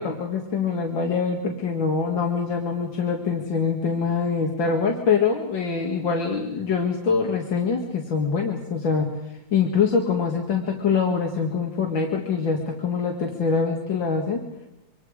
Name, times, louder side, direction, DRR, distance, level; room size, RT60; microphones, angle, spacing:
voice 1, 0.0-14.4, left 5 dB, 80° left, 1 dB, 2.7 m, -24 dB
27.0 x 25.0 x 5.0 m, 0.90 s
omnidirectional pair, 2.0 m